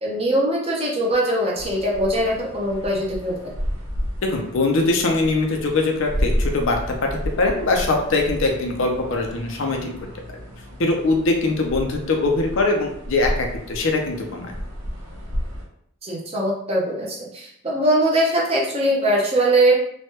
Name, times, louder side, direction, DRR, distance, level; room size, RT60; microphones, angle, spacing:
voice 1, 0.0-3.5 16.0-19.8, right 1 dB, 25° right, -3 dB, 0.6 m, -21 dB
sound 1, 1.6-15.6, equal, 80° right, 0.7 m, -31 dB
voice 2, 4.3-6.8 7.4-9.9 10.8-14.5, left 3 dB, 65° left, 2 dB, 0.5 m, -22 dB
3.1 x 2.2 x 2.8 m, 0.72 s
head